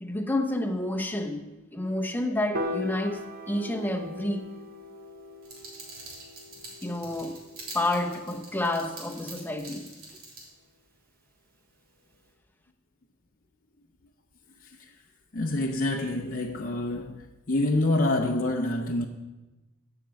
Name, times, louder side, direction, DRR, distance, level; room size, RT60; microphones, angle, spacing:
voice 1, 0.0-4.4 6.8-7.4 7.7-9.9, left 1 dB, 10° left, 0.8 m, -29 dB
Piano, 2.5-8.9, left 1 dB, 45° right, 1.0 m, -39 dB
sound 1, 5.4-10.4, right 2 dB, 75° right, 3.3 m, -45 dB
voice 2, 14.6-14.9 15.3-19.1, left 2 dB, 40° left, 0.6 m, -27 dB
15.5 x 5.9 x 5.3 m
head